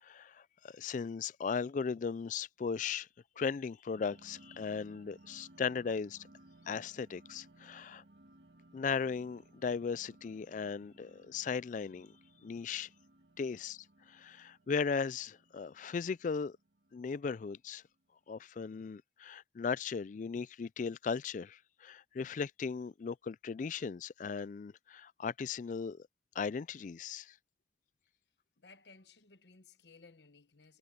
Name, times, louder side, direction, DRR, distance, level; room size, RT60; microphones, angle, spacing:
voice 1, 0.0-3.1 3.4-6.3 6.7-8.0 8.7-12.1 12.4-12.9 13.4-16.6 16.9-17.8 18.3-26.0 26.4-27.3, left 5 dB, 45° left, 0.3 m, -37 dB
sound 1, 3.9-17.9, right 1 dB, 65° right, 2.0 m, -62 dB
voice 2, 28.6-30.8, left 4 dB, 70° left, 1.1 m, -59 dB
head